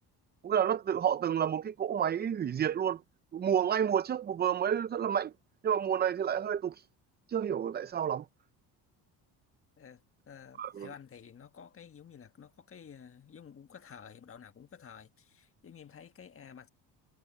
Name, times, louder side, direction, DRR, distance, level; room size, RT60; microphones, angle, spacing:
voice 1, 0.4-3.0 3.3-5.3 5.6-6.8 7.3-8.3 10.6-10.9, right 9 dB, 25° right, 0.4 m, -30 dB
voice 2, 10.3-16.7, left 7 dB, 30° left, 1.5 m, -51 dB
cardioid pair, 105°, 43 cm